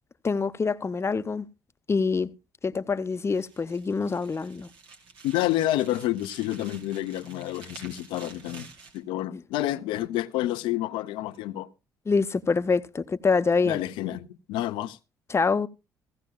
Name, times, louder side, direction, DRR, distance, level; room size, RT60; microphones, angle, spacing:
voice 1, 0.2-1.5 1.9-2.3 2.6-4.7 9.3-9.4 12.1-13.8 15.3-15.7, left 4 dB, 30° left, 0.7 m, -25 dB
sound 1, 3.1-9.0, right 4 dB, 70° right, 1.9 m, -50 dB
voice 2, 5.2-8.7 8.9-11.7 13.6-15.0, left 14 dB, 75° left, 0.6 m, -29 dB
15.5 x 15.5 x 2.3 m
hypercardioid pair, 50°, 9 cm